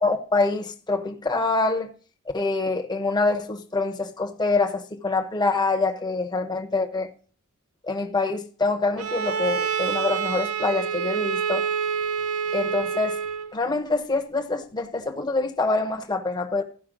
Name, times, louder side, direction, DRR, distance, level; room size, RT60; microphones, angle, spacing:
voice 1, 0.0-1.9 2.3-7.1 7.8-11.7 12.5-13.2 13.5-16.6, left 3 dB, 20° left, 1.0 m, -25 dB
Bowed string instrument, 9.0-13.6, right 6 dB, 70° right, 0.6 m, -27 dB
14.5 x 5.5 x 3.9 m
head